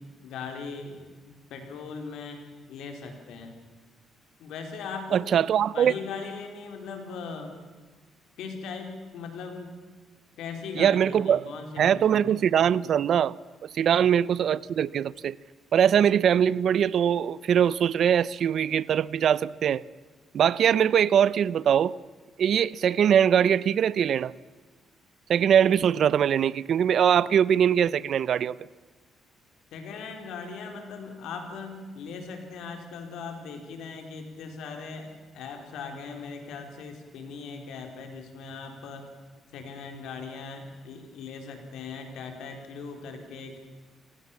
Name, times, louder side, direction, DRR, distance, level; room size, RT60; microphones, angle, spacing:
voice 1, 0.0-2.4 2.7-3.5 4.4-7.5 8.4-9.7 10.4-12.4 13.9-14.1 29.7-39.1 39.5-43.6, left 5 dB, 85° left, 4.4 m, -39 dB
voice 2, 5.1-5.9 10.8-11.4 11.8-13.3 13.6-15.3 15.7-19.8 20.3-21.9 22.4-24.3 25.3-28.6, right 8 dB, 65° right, 0.6 m, -22 dB
27.0 x 19.0 x 7.4 m
cardioid pair, 90°, 0 cm